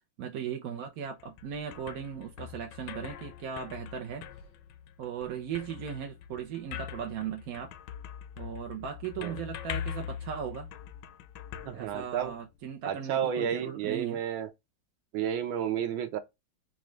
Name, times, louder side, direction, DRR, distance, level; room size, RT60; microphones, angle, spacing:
voice 1, 0.2-4.2 5.0-7.7 8.4-10.7 11.7-14.2, right 8 dB, 70° right, 0.8 m, -37 dB
sound 1, 1.0-12.5, left 9 dB, 75° left, 1.1 m, -43 dB
voice 2, 11.6-12.3 12.8-14.5 15.1-16.2, right 9 dB, 85° right, 1.5 m, -31 dB
4.2 x 2.5 x 3.0 m
omnidirectional pair, 2.1 m